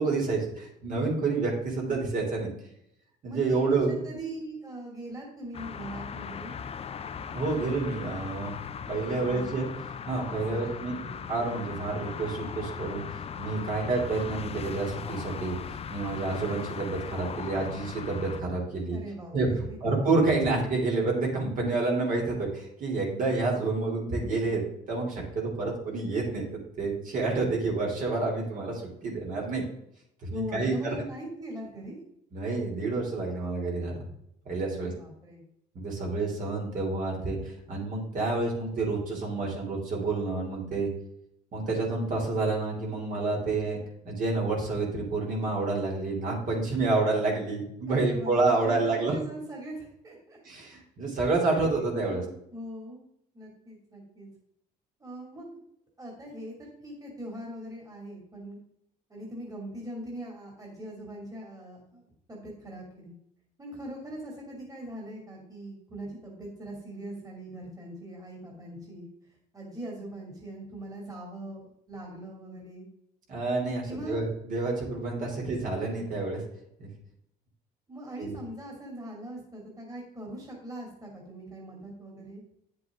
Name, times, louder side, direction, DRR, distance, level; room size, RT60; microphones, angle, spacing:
voice 1, 0.0-2.5 3.2-4.0 7.2-8.6 8.9-9.7 10.1-11.0 11.3-19.0 19.3-19.5 19.8-26.4 26.8-29.6 30.2-30.9 32.3-34.0 34.4-34.9 35.7-40.9 41.5-43.8 44.0-49.1 50.4-52.2 73.3-76.4 76.8-76.9 78.2-78.3, right 3 dB, 50° right, -1 dB, 3.5 m, -29 dB
voice 2, 3.3-6.5 8.9-9.5 10.5-11.3 18.9-19.8 25.5-25.6 30.3-32.0 34.7-35.4 47.9-50.4 51.6-53.0 53.3-54.3 55.0-55.5 56.0-58.6 59.1-62.0 62.3-63.1 63.6-69.1 69.5-72.9 73.9-74.3 77.9-82.4, right 1 dB, 20° right, -1 dB, 2.9 m, -41 dB
sound 1, 5.5-18.4, left 7 dB, 35° left, 0.6 m, -38 dB
9.3 x 7.7 x 3.8 m, 0.76 s
cardioid pair, 110°, 17 cm